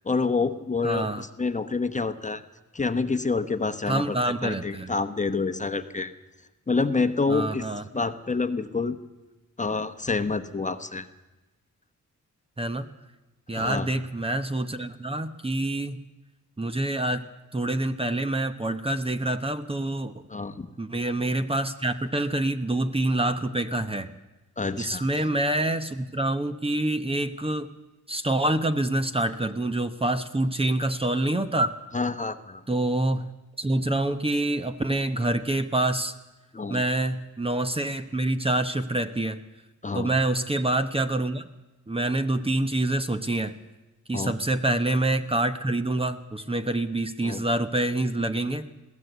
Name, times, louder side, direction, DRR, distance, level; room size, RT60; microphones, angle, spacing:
voice 1, 0.0-2.4 2.7-6.1 6.7-7.7 7.9-9.0 9.6-11.1 13.5-13.9 20.3-20.7 24.6-25.0 31.9-32.6 36.5-36.8 39.8-40.1 44.1-44.3 47.2-47.4, left 4 dB, 25° left, 9 dB, 1.1 m, -27 dB
voice 2, 0.8-1.3 3.9-4.9 7.3-8.1 12.6-12.9 13.5-16.0 16.6-17.2 17.5-20.3 20.8-24.1 24.8-27.7 28.1-31.7 32.7-33.3 33.6-36.1 36.7-39.4 39.9-41.5 41.9-43.5 44.1-48.7, right 1 dB, 20° right, 9 dB, 1.0 m, -26 dB
21.5 x 16.0 x 8.1 m, 1.1 s
cardioid pair, 95°, 31 cm